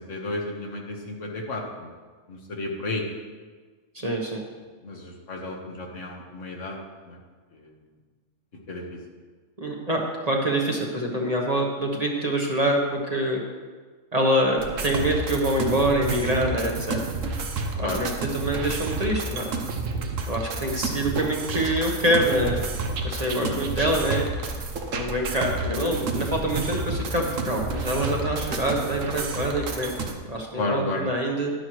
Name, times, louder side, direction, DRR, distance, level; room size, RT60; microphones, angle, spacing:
voice 1, 0.0-1.9 2.3-3.0 4.8-6.8 7.1-7.2 7.5-7.7 8.7-9.0 14.9-15.0 17.8-18.0 23.4-23.6 25.7-25.9 30.6-31.0, left 2 dB, 70° left, 0 dB, 1.8 m, -32 dB
voice 2, 3.9-4.4 9.6-13.4 14.1-17.0 17.8-19.5 20.3-22.6 23.0-24.3 24.9-29.9 30.3-31.5, right 1 dB, 30° right, 0 dB, 1.2 m, -25 dB
sound 1, 14.6-30.1, right 3 dB, 75° right, 1.3 m, -30 dB
11.5 x 10.5 x 3.2 m, 1.4 s
omnidirectional pair, 1.3 m